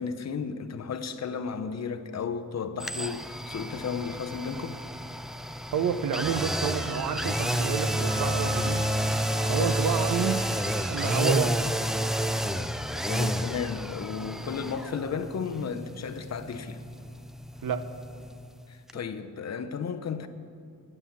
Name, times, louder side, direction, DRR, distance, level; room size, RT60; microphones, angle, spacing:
voice 1, 0.0-4.8 9.4-9.8 13.1-16.8 18.7-20.3, left 6 dB, 55° left, 0.7 m, -34 dB
sound 1, 2.8-18.6 18.9-19.0, equal, ahead, 0.3 m, -30 dB
voice 2, 5.7-8.9 9.5-10.5 10.9-11.7 17.6-17.9, right 7 dB, 85° right, 0.7 m, -29 dB
Bowed string instrument, 6.2-11.4 11.8-11.9, right 5 dB, 50° right, 0.6 m, -41 dB
10.5 x 9.5 x 7.1 m
wide cardioid pair, 130°, 33 cm